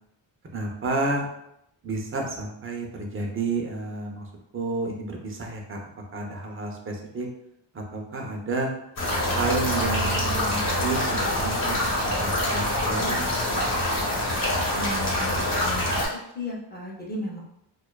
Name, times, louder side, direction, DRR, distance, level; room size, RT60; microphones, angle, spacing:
voice 1, 0.5-1.3 1.8-7.3 7.7-8.7 9.2-13.6, right 3 dB, 30° right, 1 dB, 0.4 m, -31 dB
sound 1, 9.0-16.1, left 1 dB, 50° left, 0.9 m, -25 dB
voice 2, 14.7-16.0 16.3-17.4, left 1 dB, 20° left, -3 dB, 0.6 m, -35 dB
2.5 x 2.3 x 2.2 m, 0.79 s
wide cardioid pair, 105°, 44 cm